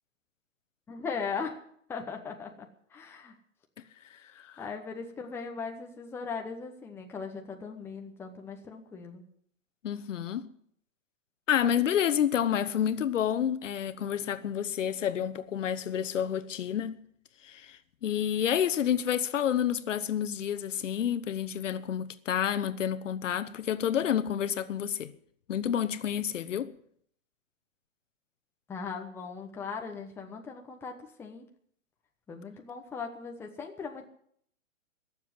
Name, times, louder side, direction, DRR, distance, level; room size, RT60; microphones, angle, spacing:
voice 1, 0.9-1.6 1.9-3.4 4.6-9.2 28.7-31.5 32.3-34.1, left 5 dB, 5° left, 0.9 m, -39 dB
voice 2, 4.1-4.6 9.8-10.5 11.5-17.0 17.4-25.1 25.5-26.7, left 9 dB, 70° left, 1.1 m, -29 dB
17.0 x 7.3 x 9.6 m
hypercardioid pair, 150°, 39 cm